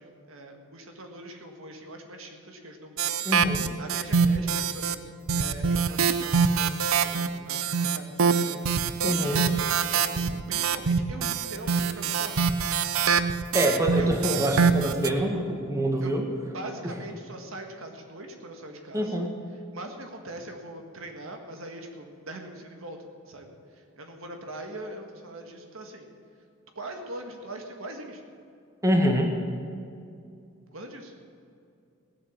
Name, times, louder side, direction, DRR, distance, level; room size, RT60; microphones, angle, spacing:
voice 1, 0.0-3.1 3.8-12.4 14.0-14.1 16.0-16.2 16.5-19.3 19.5-23.0 23.2-26.1 26.7-28.2 29.0-29.1 30.7-31.1, right 1 dB, 70° right, 4 dB, 1.8 m, -42 dB
sound 1, 3.0-5.0 5.3-15.1, right 6 dB, 90° right, 0.7 m, -25 dB
voice 2, 3.2-3.6 9.0-9.4 13.5-16.2 18.9-19.3 28.8-29.3, equal, 15° right, 2 dB, 1.5 m, -25 dB
17.5 x 8.1 x 7.3 m, 2.5 s
head